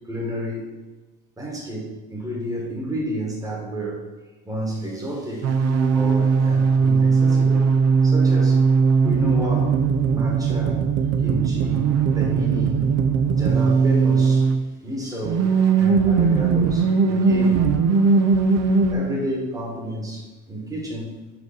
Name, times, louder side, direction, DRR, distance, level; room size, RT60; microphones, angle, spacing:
voice 1, 0.1-0.7 1.4-4.0 4.4-7.7 8.0-8.6 9.0-9.8 10.1-10.8 11.2-11.9 12.1-12.8 13.2-14.5 14.8-17.7 18.6-21.2, equal, 10° right, -2 dB, 1.4 m, -31 dB
sound 1, 5.4-14.6 15.2-18.9, right 5 dB, 45° right, 0.6 m, -19 dB
4.9 x 4.7 x 5.0 m, 1.1 s
cardioid pair, 150°, 36 cm